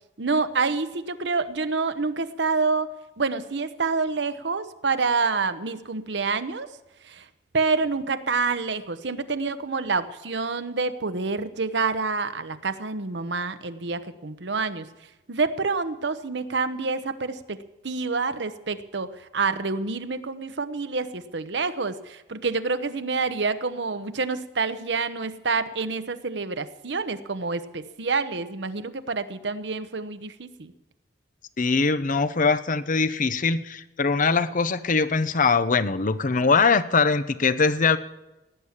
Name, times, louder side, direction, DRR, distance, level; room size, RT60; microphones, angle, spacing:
voice 1, 0.2-2.9 3.2-6.7 7.0-7.3 7.5-14.9 15.3-17.6 17.8-30.7, right 4 dB, 70° right, 11 dB, 0.9 m, -27 dB
voice 2, 31.6-38.0, left 4 dB, 45° left, 14 dB, 0.8 m, -22 dB
17.5 x 10.0 x 7.3 m, 1.0 s
head